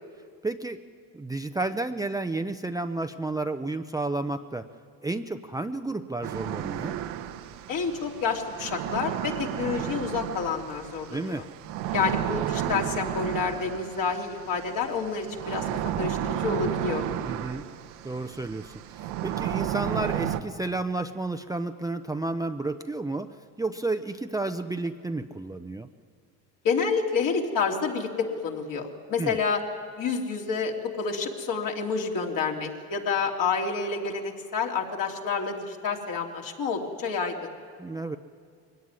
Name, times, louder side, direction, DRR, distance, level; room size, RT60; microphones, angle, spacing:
voice 1, 0.4-0.8 1.1-4.7 5.0-7.0 11.1-11.4 17.2-17.6 18.0-18.7 19.0-25.9 29.2-29.4 37.8-38.2, right 2 dB, 10° right, 6 dB, 0.7 m, -31 dB
sound 1, 6.2-20.4, right 11 dB, 80° right, 1.3 m, -33 dB
voice 2, 7.7-11.4 11.9-15.7 16.0-17.0 26.6-29.6 30.0-37.5, left 5 dB, 55° left, 0 dB, 3.2 m, -29 dB
22.0 x 17.5 x 9.7 m, 2.2 s
supercardioid pair, 95°, 39 cm